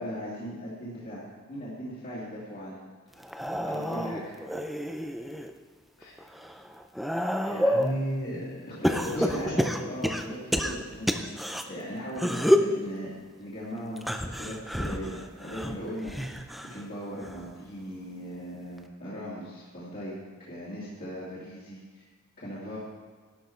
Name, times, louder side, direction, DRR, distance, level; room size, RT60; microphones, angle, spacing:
voice 1, 0.0-3.0 3.7-4.3 8.6-13.1 13.4-16.4 16.7-20.2 20.5-22.0 22.4-22.8, equal, 40° left, -9 dB, 2.3 m, -38 dB
sound 1, 3.2-5.5 6.0-8.0 8.8-11.6 12.1-12.8 14.0-16.8 17.2-17.6 18.8-18.9, equal, ahead, 0.5 m, -29 dB
voice 2, 7.4-9.8, equal, 60° left, -4 dB, 4.1 m, -34 dB
12.0 x 10.5 x 4.5 m, 1.5 s
head